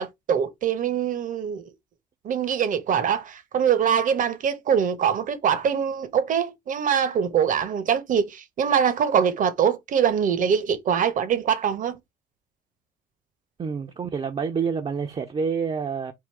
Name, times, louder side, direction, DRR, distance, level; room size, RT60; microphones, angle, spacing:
voice 1, 0.0-1.6 2.2-12.0, right 8 dB, 50° right, 1.0 m, -23 dB
voice 2, 13.6-16.1, right 6 dB, 35° right, 0.7 m, -28 dB
3.8 x 2.3 x 4.5 m
supercardioid pair, 70°, 17 cm